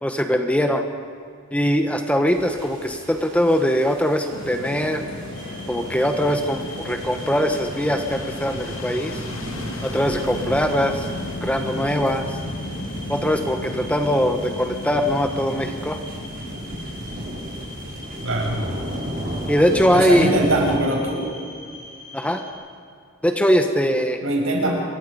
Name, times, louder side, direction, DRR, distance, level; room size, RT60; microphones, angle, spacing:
voice 1, 0.0-0.8 1.5-5.0 5.7-9.2 9.8-11.1 11.4-12.4 13.1-16.0 19.5-20.3 22.1-22.4 23.2-24.2, equal, 5° left, 5 dB, 1.1 m, -21 dB
sound 1, 2.3-20.8, equal, 40° right, 5.0 m, -35 dB
Fixed-wing aircraft airplane, 4.3-19.5, left 1 dB, 80° left, 2.5 m, -35 dB
sound 2, 5.3-22.5, left 1 dB, 40° left, 7.7 m, -42 dB
voice 2, 18.2-18.6 19.1-19.2 19.9-21.2 24.2-24.8, right 1 dB, 75° right, 0 dB, 6.4 m, -22 dB
27.0 x 22.5 x 5.3 m, 2.3 s
head